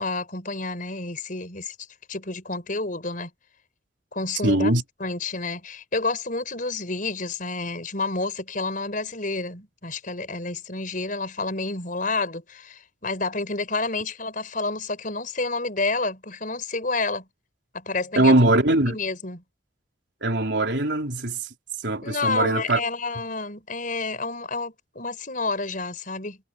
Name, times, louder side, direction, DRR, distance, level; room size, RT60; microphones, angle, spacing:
voice 1, 0.0-1.8 2.1-3.3 4.1-4.7 5.0-17.3 17.7-18.3 18.8-19.4 22.0-26.4, left 3 dB, 45° left, 5.8 m, -29 dB
voice 2, 4.4-4.8 18.2-19.0 20.2-21.4 21.8-22.8, right 1 dB, 70° right, 4.0 m, -21 dB
head